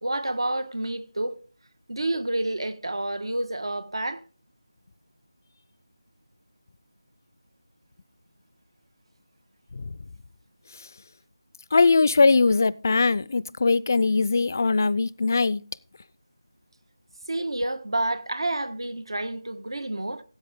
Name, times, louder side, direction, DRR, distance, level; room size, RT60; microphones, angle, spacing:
voice 1, 0.0-1.4 1.9-4.2 17.3-20.2, right 1 dB, 75° right, 1.4 m, -29 dB
voice 2, 11.7-15.6, left 4 dB, 40° left, 0.4 m, -20 dB
15.0 x 8.3 x 3.6 m
figure-of-eight pair, 170°, 3 cm